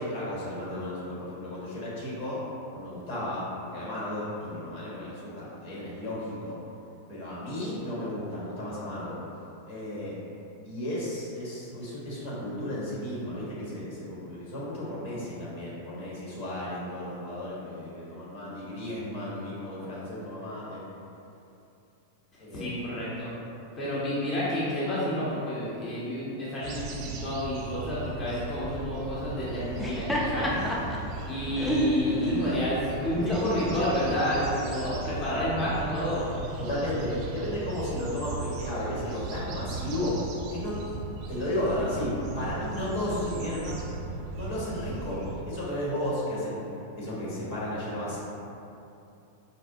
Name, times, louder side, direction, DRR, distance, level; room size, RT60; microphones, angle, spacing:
voice 1, 0.0-2.4 2.7-6.6 7.1-9.2 9.7-10.2 10.6-20.8 22.4-22.7 35.3-35.4 36.6-40.1 40.5-43.9 44.3-45.2 45.4-46.6 47.0-48.2, left 1 dB, 60° left, -7 dB, 1.1 m, -34 dB
voice 2, 22.5-23.3 23.8-30.6 31.3-36.3, left 1 dB, 30° left, -9 dB, 0.8 m, -30 dB
sound 1, 26.6-45.4, right 3 dB, 45° right, 0.4 m, -37 dB
Laughter, 29.6-34.9, equal, 10° left, 0.4 m, -31 dB
4.2 x 2.0 x 2.6 m, 2.7 s
hypercardioid pair, 125°, 0 cm